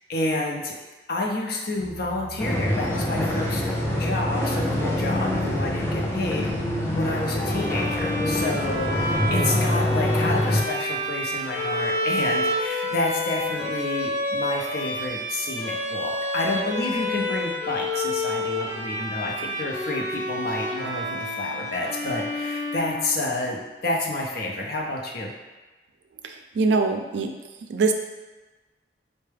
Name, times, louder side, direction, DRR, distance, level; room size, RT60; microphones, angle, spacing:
voice 1, 0.1-0.8 1.1-3.6 4.0-6.5 6.9-25.3, left 2 dB, 60° left, -1 dB, 0.6 m, -29 dB
sound 1, 1.8-8.5, right 4 dB, 25° right, 1.0 m, -40 dB
sound 2, 2.4-10.6, left 1 dB, 15° left, 0.5 m, -25 dB
Bowed string instrument, 7.4-23.5, left 1 dB, 40° left, 1.5 m, -29 dB
voice 2, 26.2-27.3 27.7-27.9, right 4 dB, 75° right, 5 dB, 0.4 m, -23 dB
4.4 x 2.1 x 3.3 m, 1.2 s
head